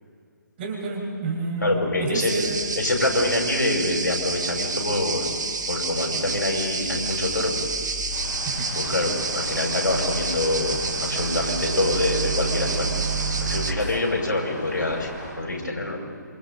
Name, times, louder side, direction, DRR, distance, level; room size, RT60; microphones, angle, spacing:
voice 1, 0.6-2.6 8.4-8.7 13.8-14.0, right 3 dB, 30° right, -1 dB, 4.6 m, -29 dB
voice 2, 1.6-2.3 2.8-5.2 5.7-7.5 8.7-12.9 13.4-15.1 15.4-16.0, left 2 dB, 70° left, -1 dB, 5.9 m, -25 dB
sound 1, 2.3-13.7, right 4 dB, 65° right, 1.9 m, -28 dB
sound 2, 8.1-15.3, left 1 dB, 25° left, 7.8 m, -38 dB
27.0 x 25.5 x 4.0 m, 2.2 s
figure-of-eight pair, 140°, 10 cm